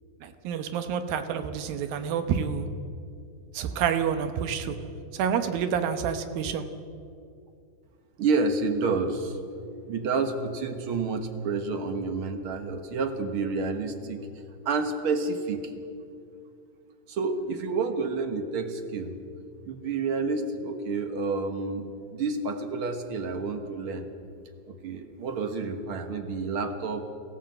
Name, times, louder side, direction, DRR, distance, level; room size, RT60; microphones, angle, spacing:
voice 1, 0.2-2.7 3.5-4.8 5.1-6.7, right 7 dB, 80° right, 9 dB, 2.9 m, -28 dB
voice 2, 8.2-9.4 9.9-14.3 14.6-15.7 17.1-19.1 19.7-24.1 24.7-27.1, right 4 dB, 55° right, 7 dB, 1.5 m, -29 dB
23.0 x 15.0 x 7.7 m, 2.5 s
omnidirectional pair, 4.1 m